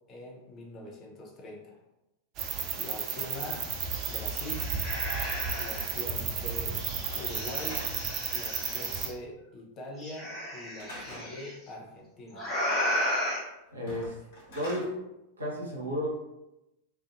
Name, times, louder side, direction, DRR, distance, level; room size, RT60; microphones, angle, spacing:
voice 1, 0.1-1.8 2.8-3.7 4.1-4.8 5.6-6.8 7.1-7.9 8.3-12.5, left 1 dB, 30° left, 1 dB, 0.5 m, -43 dB
sound 1, 2.4-9.1, right 6 dB, 35° right, 0.3 m, -33 dB
sound 2, 3.2-3.3 3.6-6.0 6.7-9.1 10.0-11.5 12.3-13.4, left 1 dB, 10° left, 0.9 m, -34 dB
Slam / Wood, 7.0-8.3 10.8-11.3 13.7-14.9, equal, 55° left, 1.1 m, -44 dB
voice 2, 13.7-14.2 14.5-15.0 15.4-16.2, equal, 75° right, -3 dB, 0.7 m, -32 dB
2.4 x 2.2 x 2.4 m, 0.93 s
figure-of-eight pair, 90°, 0 cm